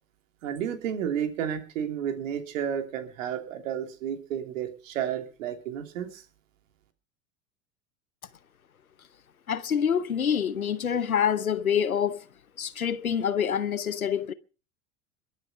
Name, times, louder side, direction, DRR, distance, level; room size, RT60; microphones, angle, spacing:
voice 1, 0.4-6.2, right 9 dB, 65° right, 3.1 m, -32 dB
voice 2, 9.5-12.2 12.6-14.3, left 8 dB, 90° left, 1.0 m, -26 dB
22.5 x 8.4 x 5.7 m
figure-of-eight pair, 80°, 41 cm